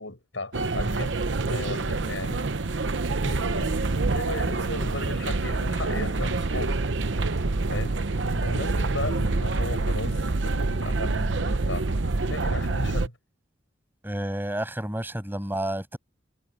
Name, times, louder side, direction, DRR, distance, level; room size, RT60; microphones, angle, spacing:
voice 1, 0.0-2.5 3.2-6.8 7.7-8.0 8.3-11.9 12.3-13.2, left 2 dB, 85° left, 7.2 m, -36 dB
sound 1, 0.5-13.1, right 3 dB, 75° right, 0.9 m, -26 dB
voice 2, 14.0-16.0, right 1 dB, 10° right, 7.9 m, -30 dB
head